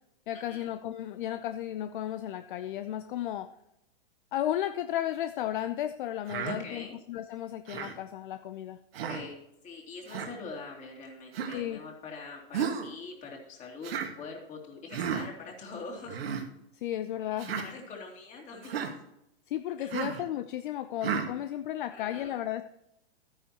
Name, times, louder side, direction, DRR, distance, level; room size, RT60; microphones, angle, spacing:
voice 1, 0.3-3.5 4.3-8.8 11.5-11.8 16.7-17.6 19.5-22.6, left 12 dB, 55° left, 10 dB, 0.6 m, -34 dB
Human voice, 6.3-6.6 7.7-8.0 8.9-9.3 10.1-10.3 11.3-11.6 12.5-12.9 13.8-14.1 14.9-15.2 16.1-16.4 17.4-17.7 18.6-18.9 19.9-20.2 21.0-21.3, right 7 dB, 70° right, 1.8 m, -33 dB
voice 2, 6.5-7.0 9.1-13.9 14.2-16.3 17.6-18.9 19.8-19.9 21.9-22.4, left 4 dB, 25° left, 0 dB, 2.7 m, -44 dB
12.0 x 9.9 x 2.9 m, 0.84 s
hypercardioid pair, 140°, 31 cm